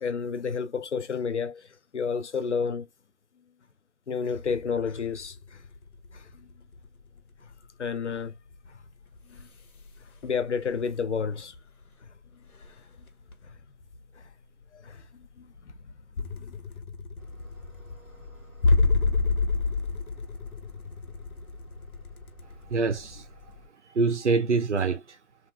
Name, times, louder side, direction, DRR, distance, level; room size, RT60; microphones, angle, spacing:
voice 1, 0.0-2.9 4.1-5.6 6.1-6.5 7.4-7.5 7.8-8.4 8.7-8.8 9.3-9.5 10.2-11.5 12.0-12.2 13.4-13.5 14.1-14.3 14.7-16.6, left 5 dB, 50° left, 0.5 m, -31 dB
sound 1, 4.3-11.9 12.2-23.6, left 3 dB, 70° left, 0.9 m, -31 dB
sound 2, 17.1-23.7, left 2 dB, ahead, 0.9 m, -51 dB
voice 2, 22.7-23.5 23.8-25.2, right 4 dB, 50° right, 0.5 m, -26 dB
2.8 x 2.4 x 2.3 m
figure-of-eight pair, 160°, 46 cm